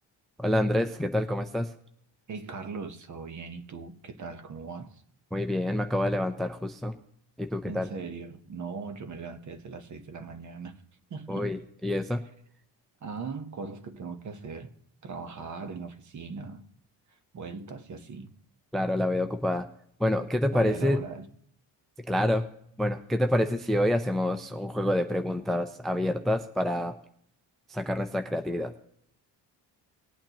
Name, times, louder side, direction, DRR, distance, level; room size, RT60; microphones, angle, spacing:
voice 1, 0.4-1.7 5.3-6.9 7.4-7.9 11.3-12.2 18.7-19.7 20.0-21.0 22.1-22.5 22.8-27.0 27.7-28.7, left 1 dB, ahead, 8 dB, 0.5 m, -27 dB
voice 2, 2.3-5.0 7.7-10.7 11.1-11.5 13.0-14.7 15.0-16.7 17.3-18.3 20.5-21.3, right 4 dB, 40° right, 9 dB, 1.1 m, -39 dB
20.0 x 8.7 x 3.0 m, 0.69 s
cardioid pair, 125°, 44 cm